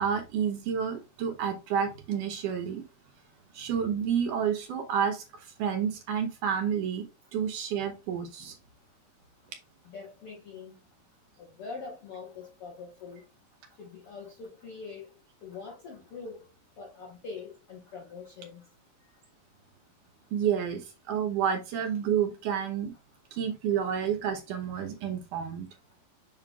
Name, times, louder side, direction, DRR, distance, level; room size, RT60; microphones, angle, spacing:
voice 1, 0.0-2.8 3.5-7.1 7.3-8.6 20.3-22.9 23.3-25.7, right 8 dB, 70° right, 2.2 m, -30 dB
voice 2, 9.8-10.8 11.4-13.2 13.8-15.1 15.4-16.5 16.8-18.6, left 4 dB, 70° left, 1.3 m, -43 dB
7.4 x 5.6 x 2.3 m
omnidirectional pair, 4.4 m